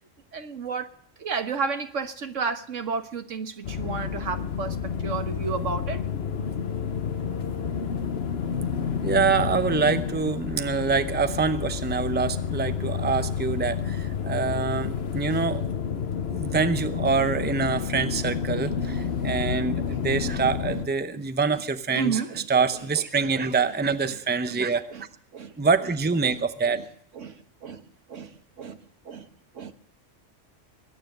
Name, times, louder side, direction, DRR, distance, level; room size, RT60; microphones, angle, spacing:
voice 1, 0.3-0.9 1.2-6.0 19.0-19.1 19.8-20.4 21.1-21.3 21.9-22.5 24.1-24.2 24.5-24.6 24.9-25.0 25.3-25.5 26.2-26.4 26.7-26.8 27.2-27.8 28.1-28.8 29.1-29.3 29.5-29.7, right 5 dB, 85° right, 1.7 m, -32 dB
sound 1, 3.6-20.9, left 7 dB, 60° left, 1.2 m, -30 dB
voice 2, 9.0-15.9 16.3-24.9 25.6-26.8, right 5 dB, 10° right, 0.6 m, -25 dB
22.0 x 9.7 x 6.7 m
omnidirectional pair, 1.2 m